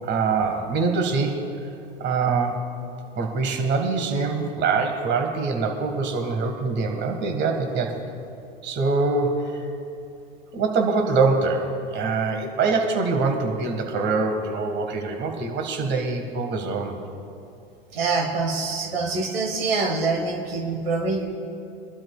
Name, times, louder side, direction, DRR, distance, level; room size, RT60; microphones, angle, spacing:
voice 1, 0.0-1.5 2.0-2.6 3.2-8.0 8.6-9.7 10.5-17.0, right 4 dB, 35° right, 3 dB, 1.8 m, -24 dB
voice 2, 17.9-21.2, right 3 dB, 75° right, 2 dB, 1.8 m, -25 dB
25.0 x 12.0 x 2.4 m, 2.6 s
figure-of-eight pair, 80°, 30 cm